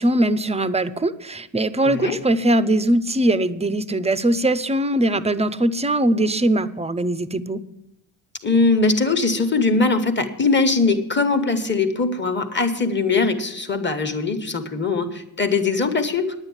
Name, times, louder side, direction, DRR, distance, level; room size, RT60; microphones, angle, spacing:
voice 1, 0.0-7.6, right 1 dB, 15° right, 14 dB, 0.6 m, -21 dB
voice 2, 1.8-2.2 8.4-16.3, left 3 dB, 25° left, 7 dB, 1.3 m, -21 dB
10.5 x 8.9 x 7.2 m, 0.86 s
cardioid pair, 80°, 43 cm